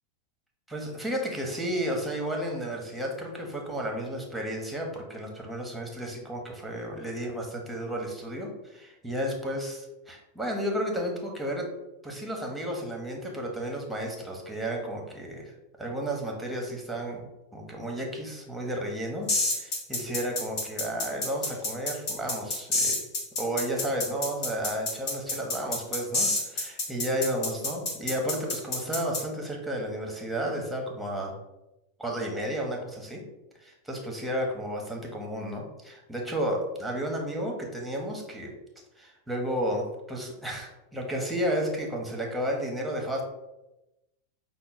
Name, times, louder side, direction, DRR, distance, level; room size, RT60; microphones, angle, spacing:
voice 1, 0.7-11.7 12.0-15.5 15.8-17.2 17.5-19.3 19.6-23.0 23.4-31.3 32.0-33.2 33.6-38.5 39.0-43.2, equal, 5° right, 0 dB, 1.0 m, -32 dB
sound 1, 19.3-29.2, left 2 dB, 45° left, 1.2 m, -28 dB
5.6 x 2.0 x 4.0 m, 0.96 s
figure-of-eight pair, 90°, 0 cm